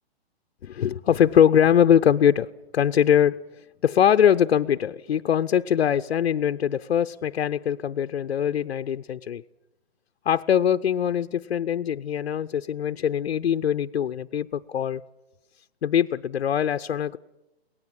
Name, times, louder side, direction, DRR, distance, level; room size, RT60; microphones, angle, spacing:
voice 1, 0.6-2.5 2.7-3.4 3.8-9.4 10.3-15.0 15.8-17.2, left 9 dB, 80° left, 0.6 m, -22 dB
23.0 x 18.5 x 7.4 m
hypercardioid pair, 160°, 32 cm